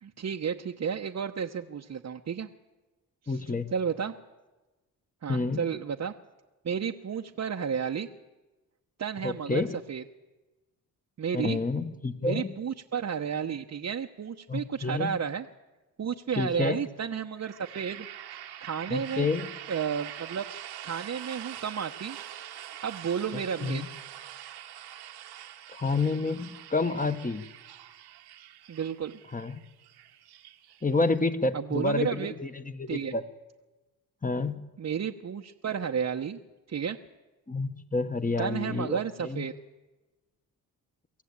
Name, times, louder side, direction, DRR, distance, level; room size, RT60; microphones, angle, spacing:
voice 1, 0.0-2.5 3.2-3.4 3.7-4.1 5.2-6.1 6.6-8.1 9.0-10.0 11.2-11.6 12.2-15.5 16.0-18.1 18.6-19.3 19.7-20.4 20.8-22.2 22.8-23.8 28.7-29.2 31.5-32.3 32.9-33.1 34.8-36.4 36.7-37.0 38.4-39.5, right 7 dB, 45° right, 2 dB, 1.0 m, -32 dB
voice 2, 3.3-3.7 5.3-5.6 9.2-9.7 11.3-12.5 14.5-15.2 16.3-16.8 18.9-19.5 23.3-23.9 25.8-27.5 29.3-29.6 30.8-33.2 34.2-34.6 37.5-39.5, left 3 dB, 20° left, 9 dB, 1.6 m, -29 dB
sound 1, 17.4-31.2, right 12 dB, 90° right, 1.6 m, -44 dB
23.5 x 15.0 x 8.7 m, 1.1 s
cardioid pair, 70°, 38 cm